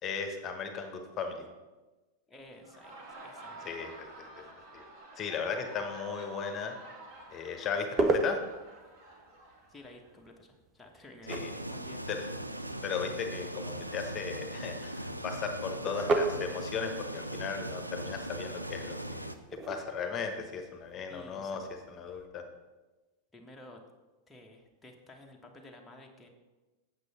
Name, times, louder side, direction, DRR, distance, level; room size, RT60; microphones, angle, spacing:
voice 1, 0.0-1.5 3.6-4.4 4.7-4.8 5.1-6.7 7.3-8.4 11.3-11.5 12.1-12.3 12.8-19.3 19.7-22.4, left 6 dB, 30° left, 5 dB, 1.2 m, -36 dB
voice 2, 2.3-3.7 9.7-11.4 11.7-12.0 21.1-21.6 23.3-23.8 24.3-26.3, left 1 dB, 10° left, 0 dB, 1.2 m, -52 dB
Laughter, 2.5-10.2, right 2 dB, 45° right, 2.4 m, -49 dB
sound 1, 7.1-22.3, right 3 dB, 25° right, 0.9 m, -38 dB
sound 2, 11.3-19.3, right 1 dB, 85° right, 0.5 m, -39 dB
8.3 x 7.8 x 4.2 m, 1.2 s
figure-of-eight pair, 90°, 0 cm